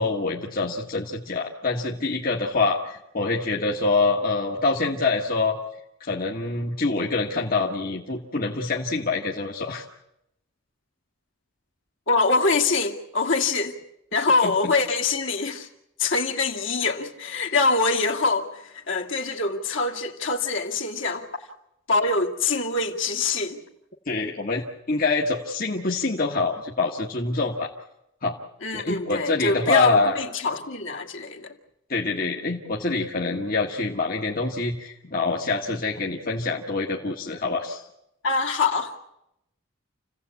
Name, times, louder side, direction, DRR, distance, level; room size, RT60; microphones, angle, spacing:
voice 1, 0.0-5.6 6.0-9.8 14.4-14.7 24.0-27.7 28.2-28.4 28.7-30.2 31.9-37.9, left 3 dB, 40° left, 1.6 m, -25 dB
voice 2, 12.1-13.7 14.1-15.7 16.0-18.5 18.9-21.3 21.9-23.6 28.6-31.5 38.2-38.9, left 3 dB, 60° left, 2.2 m, -24 dB
28.5 x 16.5 x 8.4 m
head